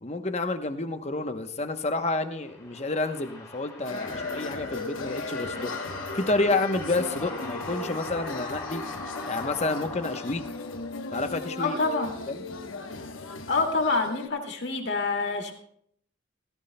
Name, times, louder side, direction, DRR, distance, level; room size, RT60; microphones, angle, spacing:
voice 1, 0.0-5.8 6.1-8.8 9.3-10.4 11.1-11.8 12.3-12.4, left 2 dB, 35° left, 8 dB, 0.9 m, -29 dB
sound 1, 2.3-11.2, left 3 dB, 15° left, 3.2 m, -39 dB
sound 2, 3.8-14.3, left 3 dB, 80° left, 1.1 m, -37 dB
voice 2, 11.6-12.1 13.5-15.5, left 3 dB, 60° left, 2 dB, 2.2 m, -26 dB
17.0 x 15.5 x 2.2 m, 0.66 s
head